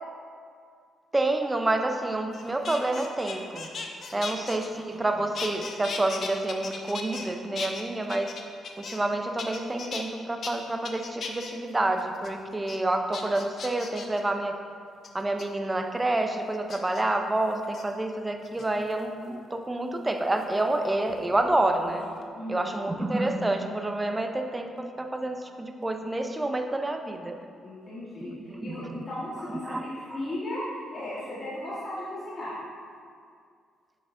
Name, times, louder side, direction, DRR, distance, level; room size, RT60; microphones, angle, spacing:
voice 1, 1.1-3.7 4.1-8.3 8.8-14.6 15.1-22.1 22.5-24.7 25.0-27.3 28.2-29.0 29.4-30.2, right 2 dB, 15° right, 5 dB, 0.5 m, -28 dB
sound 1, 2.3-5.1 5.3-7.3 7.5-9.1 9.4-10.0 10.4-10.5 10.8-11.5 12.0-12.3 12.7-12.8 13.1-14.2 15.0-15.4 16.7-17.0 17.6-17.8 18.4-19.0 20.4-21.6 21.9-22.3, left 4 dB, 50° left, 0.6 m, -38 dB
voice 2, 22.4-22.7 27.6-32.6, left 1 dB, 35° left, -9 dB, 1.5 m, -36 dB
7.2 x 6.0 x 2.6 m, 2.2 s
cardioid pair, 90°, 0 cm